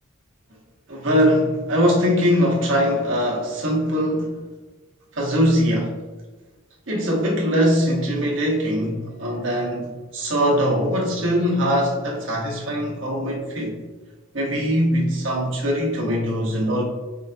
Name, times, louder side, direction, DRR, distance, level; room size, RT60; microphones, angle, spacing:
voice 1, 0.9-4.3 5.1-5.9 6.9-13.8 14.3-16.8, equal, 65° right, -2 dB, 1.0 m, -21 dB
4.8 x 2.6 x 2.2 m, 1.2 s
head